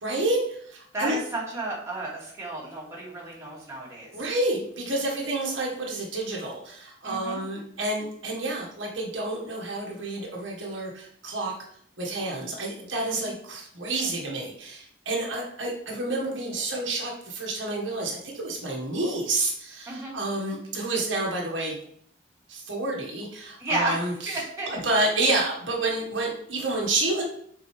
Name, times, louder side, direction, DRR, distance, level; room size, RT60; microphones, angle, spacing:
voice 1, 0.0-1.2 4.1-11.6 12.0-21.8 22.5-24.4 24.7-27.2, right 2 dB, 85° right, -2 dB, 1.7 m, -29 dB
voice 2, 0.9-4.1 7.0-7.4 13.1-13.3 19.9-20.2 23.6-24.8, right 2 dB, 15° right, -6 dB, 2.5 m, -32 dB
7.8 x 4.6 x 3.4 m, 0.64 s
head